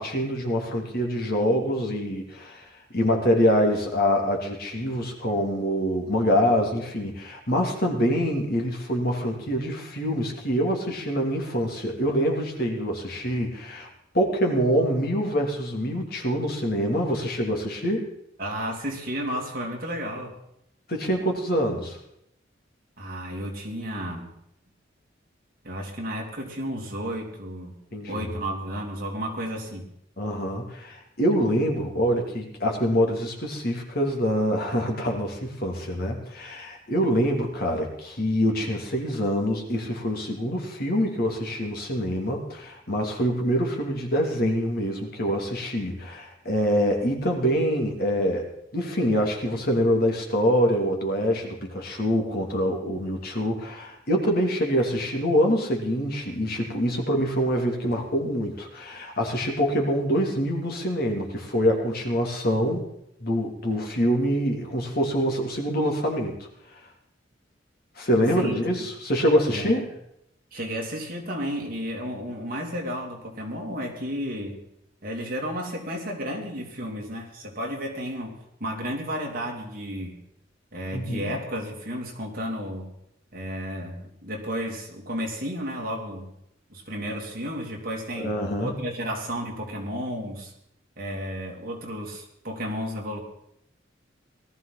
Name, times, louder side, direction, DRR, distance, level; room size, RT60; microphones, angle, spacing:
voice 1, 0.0-13.9 14.1-18.1 20.9-22.0 27.9-28.3 30.2-48.5 48.7-62.8 63.2-66.3 68.0-69.9 80.9-81.3 88.2-88.8, equal, 55° left, 1 dB, 3.0 m, -25 dB
voice 2, 18.4-20.3 23.0-24.3 25.6-27.8 28.1-29.9 68.3-68.6 69.5-69.8 70.5-74.6 75.0-80.2 80.7-82.9 83.3-86.3 86.7-88.3 88.6-90.5 91.0-93.2, equal, 50° right, 0 dB, 3.0 m, -32 dB
19.0 x 13.5 x 4.2 m, 0.76 s
head